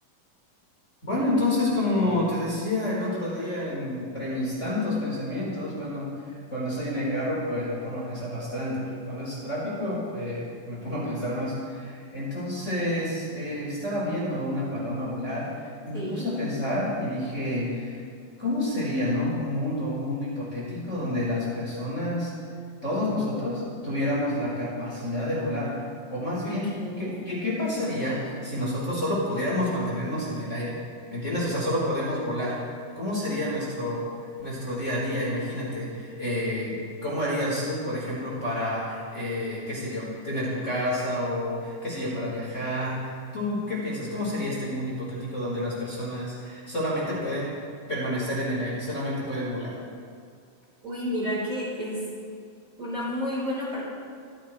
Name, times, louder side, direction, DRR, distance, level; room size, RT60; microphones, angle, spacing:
voice 1, 1.0-18.0 18.4-22.3 22.8-25.7 26.1-26.7 27.0-30.8 31.1-32.6 32.9-34.1 34.4-47.5 47.9-49.8, left 1 dB, 20° left, -7 dB, 5.0 m, -29 dB
voice 2, 15.9-16.3 26.4-27.2 50.8-52.0 52.8-53.8, left 1 dB, 20° right, -7 dB, 5.4 m, -31 dB
26.0 x 16.0 x 3.4 m, 2.3 s
omnidirectional pair, 4.0 m